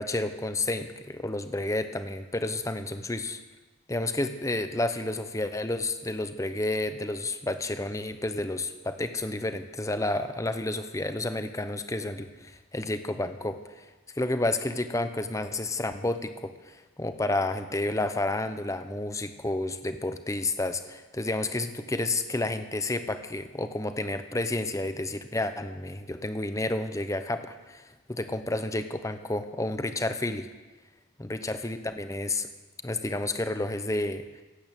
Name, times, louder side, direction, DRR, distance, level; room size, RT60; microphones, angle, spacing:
voice 1, 0.0-3.4 3.9-13.8 14.2-27.8 28.1-30.5 31.2-32.5 32.8-34.3, left 2 dB, 15° left, 9 dB, 0.7 m, -30 dB
16.5 x 8.7 x 7.4 m, 1.2 s
head